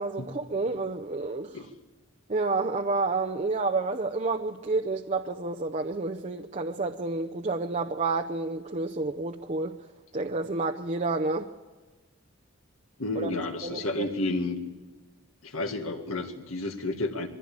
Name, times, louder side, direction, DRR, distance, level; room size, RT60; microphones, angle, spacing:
voice 1, 0.0-1.7 2.3-9.8 10.1-11.5 13.2-13.3 13.6-14.1, right 3 dB, 35° right, 0.6 m, -29 dB
voice 2, 13.0-14.6 15.4-17.3, left 2 dB, 80° left, 2.1 m, -31 dB
22.5 x 15.5 x 8.8 m
head